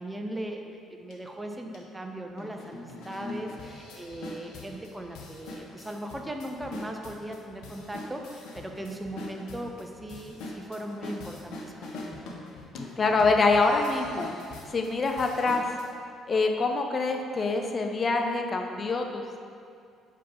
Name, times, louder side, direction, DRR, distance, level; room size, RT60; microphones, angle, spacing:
voice 1, 0.0-12.2, right 1 dB, 15° right, 3 dB, 0.8 m, -38 dB
sound 1, 1.1-1.2 1.7-1.8 2.4-15.9, left 2 dB, 65° left, 1.0 m, -43 dB
voice 2, 13.0-14.3 14.7-15.6 16.3-19.4, left 3 dB, 35° left, 3 dB, 0.7 m, -25 dB
5.6 x 5.1 x 5.7 m, 2.4 s
figure-of-eight pair, 50°, 0 cm